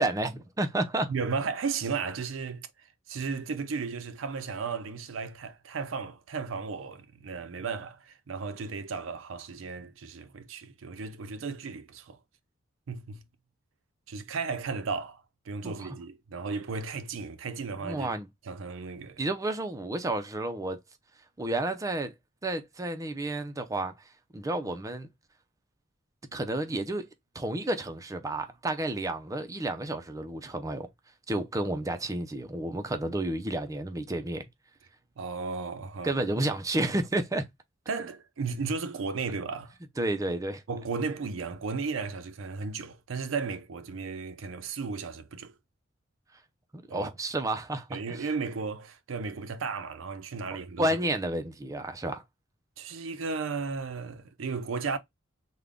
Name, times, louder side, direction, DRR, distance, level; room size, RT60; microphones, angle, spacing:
voice 1, 0.0-1.1 15.6-15.9 17.8-18.3 19.2-20.8 21.4-22.1 22.4-23.9 24.3-25.1 26.3-27.1 27.3-30.9 31.3-34.5 36.0-37.5 40.0-40.6 46.7-48.3 50.8-52.2, right 1 dB, 15° right, 0.5 m, -31 dB
voice 2, 1.1-12.2 12.9-13.2 14.1-18.1 18.5-19.2 35.2-36.1 37.9-39.7 40.7-45.5 46.9-47.1 47.9-51.0 52.8-55.0, right 4 dB, 85° right, 0.5 m, -35 dB
3.7 x 2.1 x 3.4 m
head